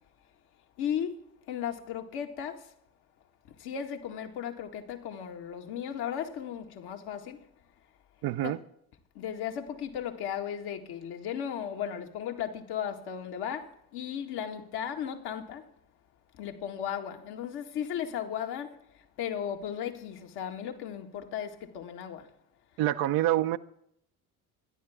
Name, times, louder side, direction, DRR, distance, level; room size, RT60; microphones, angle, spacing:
voice 1, 0.8-1.1 1.5-2.6 3.6-7.4 8.4-8.5 9.2-13.7 13.9-15.6 16.4-18.7 19.2-21.5 21.7-22.2, left 9 dB, 60° left, 2.0 m, -35 dB
voice 2, 8.2-8.6 22.8-23.6, right 14 dB, 55° right, 0.8 m, -26 dB
25.0 x 11.0 x 3.6 m
figure-of-eight pair, 55°, 44 cm